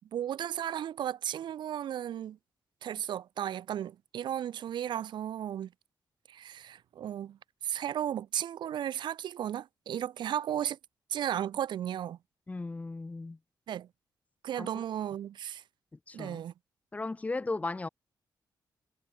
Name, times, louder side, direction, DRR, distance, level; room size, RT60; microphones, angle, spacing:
voice 1, 0.1-2.4 2.8-5.7 6.3-7.4 7.6-10.8 11.1-12.2 13.7-13.9 14.4-15.6 16.1-16.5, right 10 dB, 85° right, 2.0 m, -34 dB
voice 2, 12.5-13.4 14.6-14.7 16.1-16.4 16.9-17.9, left 3 dB, 20° left, 3.5 m, -36 dB
wide cardioid pair, 160°, 8 cm